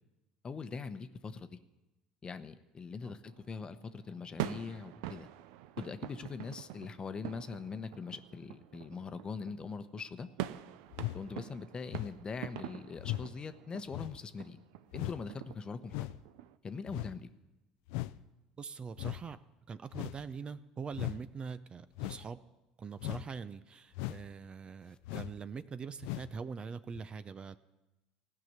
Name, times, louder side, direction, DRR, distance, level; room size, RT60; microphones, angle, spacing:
voice 1, 0.4-1.6 2.2-5.3 5.8-10.3 11.1-14.6 14.9-16.1 16.6-17.3, left 5 dB, 30° left, 10 dB, 0.9 m, -42 dB
sound 1, 3.2-16.6, right 13 dB, 75° right, 0.5 m, -45 dB
sound 2, 10.9-11.2 11.9-12.2 13.0-13.3 13.9-14.2 14.9-15.2 15.9-16.2 16.9-17.2 17.9-18.2 19.0-19.2 19.9-20.2 20.9-21.2 21.9-22.3 23.0-23.3 23.9-24.3 25.0-25.4 26.0-26.3 26.9-27.0, left 17 dB, 75° left, 0.4 m, -38 dB
voice 2, 18.6-19.4 19.7-22.4 22.8-27.6, right 5 dB, 35° right, 13 dB, 0.6 m, -43 dB
16.0 x 5.9 x 9.4 m, 1.0 s
hypercardioid pair, 75°, 3 cm